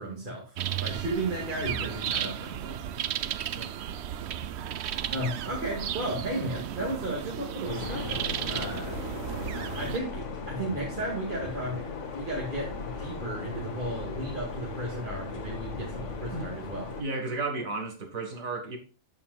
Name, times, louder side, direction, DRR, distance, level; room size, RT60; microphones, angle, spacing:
voice 1, 0.0-2.8 5.1-9.0 9.5-11.8 12.1-16.9, right 1 dB, 40° right, 2.2 m, -34 dB
sound 1, 0.6-10.0, right 10 dB, 65° right, 0.8 m, -34 dB
sound 2, 7.6-17.0, left 4 dB, 65° left, 1.6 m, -37 dB
voice 2, 17.0-18.8, right 3 dB, 90° right, 2.1 m, -33 dB
14.0 x 5.7 x 2.3 m
omnidirectional pair, 1.4 m